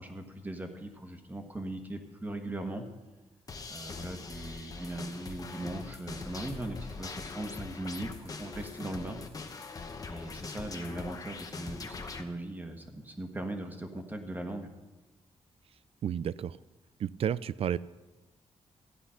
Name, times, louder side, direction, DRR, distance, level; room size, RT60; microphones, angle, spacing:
voice 1, 0.0-2.8 3.7-9.2 9.5-9.8 10.1-14.7, right 1 dB, 15° right, 5 dB, 1.3 m, -39 dB
sound 1, 3.5-12.2, left 4 dB, 30° left, 1.0 m, -42 dB
voice 2, 16.0-16.6 17.0-17.8, right 9 dB, 60° right, 18 dB, 0.4 m, -31 dB
14.0 x 10.0 x 5.7 m, 1.2 s
wide cardioid pair, 165°, 11 cm